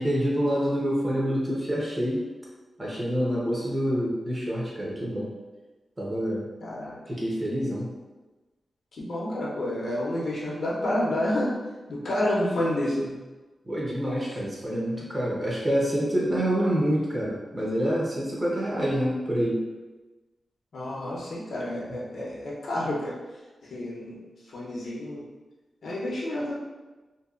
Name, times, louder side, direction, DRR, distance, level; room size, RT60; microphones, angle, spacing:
voice 1, 0.0-2.2 2.8-5.3 6.0-6.5 7.1-7.9 13.7-19.6, equal, 25° right, -5 dB, 0.7 m, -27 dB
voice 2, 6.6-7.0 8.9-11.6 11.9-13.2 14.3-14.4 20.7-23.1 23.7-24.2 24.5-25.2 25.8-26.6, left 1 dB, 65° left, -5 dB, 0.6 m, -29 dB
2.6 x 2.2 x 2.4 m, 1.2 s
wide cardioid pair, 115°, 0 cm